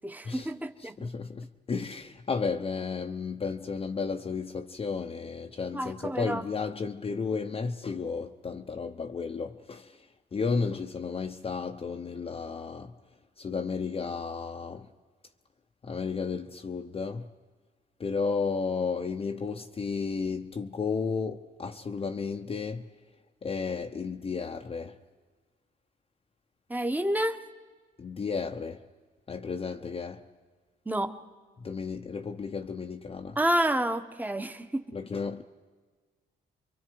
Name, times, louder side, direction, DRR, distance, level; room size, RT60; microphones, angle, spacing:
voice 1, 0.0-1.1 5.7-6.4 26.7-27.4 30.8-31.1 33.4-34.8, right 1 dB, 10° right, 1.2 m, -29 dB
voice 2, 0.8-10.1 10.3-13.0 13.4-14.9 15.8-17.3 18.0-22.9 23.4-25.0 28.0-28.9 29.3-30.2 31.6-33.4 34.9-35.4, left 5 dB, 35° left, 0.8 m, -33 dB
29.5 x 24.0 x 4.8 m
cardioid pair, 95°, 17 cm